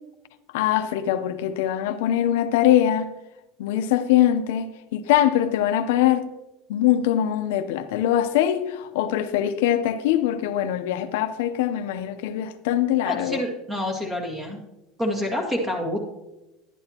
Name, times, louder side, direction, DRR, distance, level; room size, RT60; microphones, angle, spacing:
voice 1, 0.5-3.1 3.6-6.3 6.7-13.4, left 11 dB, 85° left, 0.7 m, -22 dB
voice 2, 13.0-14.6 15.0-16.0, left 1 dB, 15° right, 2.0 m, -27 dB
11.5 x 11.0 x 2.9 m
cardioid pair, 160°, 0 cm